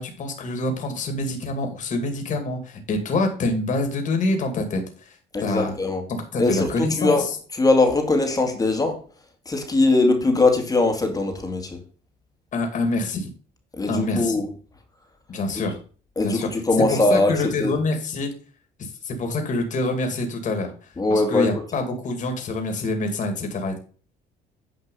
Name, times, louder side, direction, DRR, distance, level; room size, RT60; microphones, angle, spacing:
voice 1, 0.0-5.2 5.4-5.7 6.1-7.3 12.5-13.3 13.9-14.4 15.3-15.8 16.2-16.5 16.9-18.3 18.8-20.7 21.1-23.8, left 2 dB, 50° left, 2.4 m, -26 dB
voice 2, 5.3-6.1 6.4-7.3 7.5-9.0 9.5-11.8 13.7-14.5 15.5-15.6 16.2-17.7 21.0-21.5, left 2 dB, 20° left, 2.1 m, -21 dB
9.4 x 5.2 x 5.5 m
cardioid pair, 110°, 17 cm